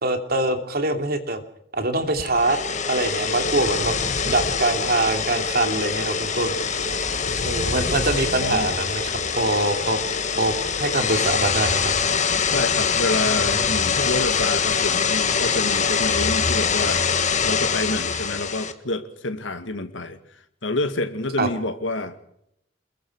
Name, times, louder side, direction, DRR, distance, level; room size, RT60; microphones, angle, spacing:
voice 1, 0.0-1.4 1.7-2.6 2.9-4.0 4.2-6.6 7.4-10.0 10.4-11.9 13.3-13.5 21.4-21.5, right 2 dB, 55° right, 6 dB, 2.8 m, -24 dB
sound 1, 2.2-18.7, left 5 dB, 40° left, 1.6 m, -24 dB
voice 2, 8.2-8.8 12.5-17.0 17.4-20.2 20.6-22.2, left 2 dB, 80° left, 8 dB, 2.1 m, -28 dB
27.5 x 22.0 x 4.8 m, 0.73 s
head